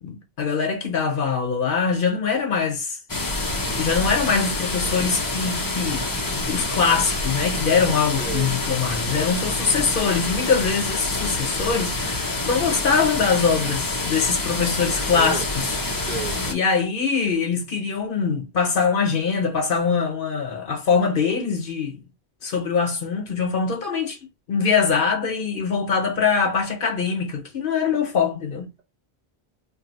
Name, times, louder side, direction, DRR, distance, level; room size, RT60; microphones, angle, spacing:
voice 1, 0.0-3.0 3.8-15.8 16.5-22.0 22.4-24.2 24.5-28.7, left 5 dB, 60° left, 0.9 m, -23 dB
sound 1, 3.1-16.5, left 2 dB, 30° left, 0.4 m, -27 dB
voice 2, 8.2-8.6 15.2-15.4 15.9-16.4, right 6 dB, 50° right, 0.7 m, -32 dB
2.6 x 2.1 x 3.9 m
omnidirectional pair, 1.0 m